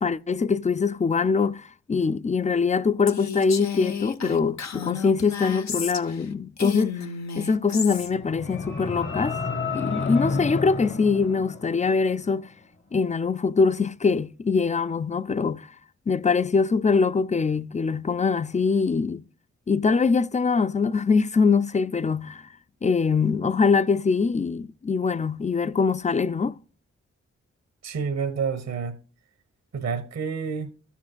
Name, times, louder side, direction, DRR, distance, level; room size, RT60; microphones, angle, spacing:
voice 1, 0.0-7.0 7.4-9.4 9.7-12.5 12.9-15.7 16.1-19.2 19.7-22.4 22.8-26.6, left 5 dB, 25° left, 0.4 m, -23 dB
Female speech woman speaking, 3.1-6.2 6.6-8.1, left 6 dB, 70° left, 0.9 m, -32 dB
sound 1, 8.0-12.2, left 4 dB, 40° left, 1.2 m, -30 dB
voice 2, 27.8-29.0 29.7-30.7, right 5 dB, 65° right, 1.0 m, -29 dB
13.0 x 7.2 x 2.3 m
cardioid pair, 50°, 29 cm